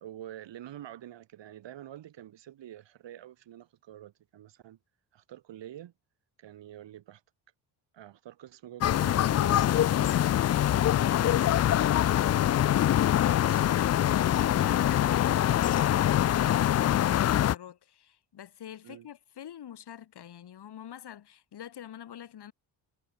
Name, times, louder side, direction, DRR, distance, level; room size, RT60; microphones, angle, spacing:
voice 1, 0.0-4.8 5.1-5.9 6.4-7.2 7.9-10.1 18.8-19.1, right 12 dB, 70° right, 4.7 m, -47 dB
sound 1, 8.8-17.6, left 12 dB, 35° left, 0.4 m, -24 dB
voice 2, 9.5-22.5, left 10 dB, 60° left, 6.7 m, -46 dB
cardioid pair, 135°, 45 cm